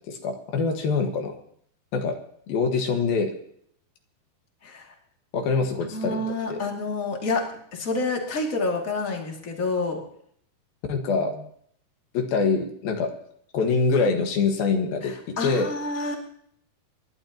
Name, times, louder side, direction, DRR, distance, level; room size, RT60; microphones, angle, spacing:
voice 1, 0.1-1.3 1.9-2.2 2.5-3.3 5.3-6.2 6.5-6.6 10.9-11.5 12.1-13.1 13.5-15.7, left 4 dB, 70° left, 4 dB, 3.3 m, -24 dB
voice 2, 4.6-4.9 5.9-7.4 7.7-10.0 15.0-16.1, left 3 dB, 25° left, 0 dB, 2.1 m, -28 dB
29.0 x 11.5 x 2.9 m, 0.65 s
omnidirectional pair, 4.6 m